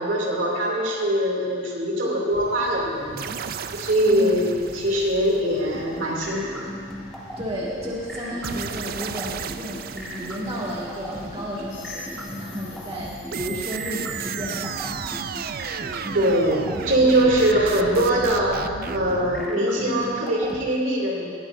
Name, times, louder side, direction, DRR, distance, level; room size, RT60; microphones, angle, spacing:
voice 1, 0.0-3.2 3.7-6.8 16.1-21.3, right 1 dB, 70° right, -2 dB, 2.7 m, -22 dB
sound 1, 2.3-18.5, left 1 dB, 90° left, 4.2 m, -45 dB
sound 2, 3.2-5.8 8.4-11.2 13.3-19.5, right 7 dB, 50° right, 0.4 m, -34 dB
voice 2, 4.1-4.4 7.4-15.2, equal, 30° right, -6 dB, 2.0 m, -33 dB
sound 3, 5.7-20.6, equal, ahead, 1.8 m, -36 dB
20.0 x 16.0 x 2.6 m, 2.1 s
head